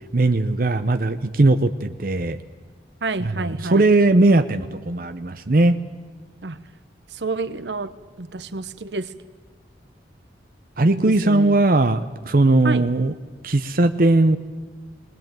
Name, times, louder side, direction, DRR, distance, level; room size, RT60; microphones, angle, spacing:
voice 1, 0.1-2.4 3.2-5.8 10.8-13.1 13.4-14.4, right 2 dB, 55° right, 9 dB, 0.7 m, -19 dB
voice 2, 3.0-3.8 6.4-6.6 7.1-9.1 10.9-11.6 12.6-12.9, right 3 dB, 80° right, 13 dB, 1.0 m, -29 dB
20.5 x 19.0 x 9.1 m, 1.4 s
head